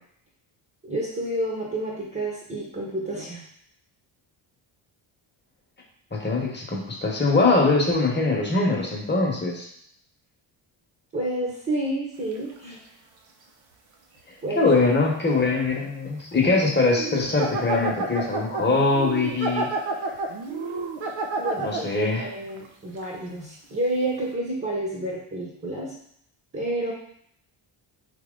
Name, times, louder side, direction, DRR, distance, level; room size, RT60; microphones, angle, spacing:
voice 1, 0.8-3.5 11.1-12.8 14.4-14.7 21.4-25.9 26.5-26.9, right 1 dB, 25° right, -4 dB, 1.1 m, -29 dB
voice 2, 6.1-9.7 14.5-19.7 21.6-22.3, left 3 dB, 20° left, -1 dB, 1.2 m, -22 dB
sound 1, 12.3-12.6 15.7-15.8 16.3-22.0 22.6-22.7 23.0-23.1, right 3 dB, 65° right, 0.8 m, -30 dB
3.7 x 2.9 x 3.8 m, 0.67 s
cardioid pair, 85°, 50 cm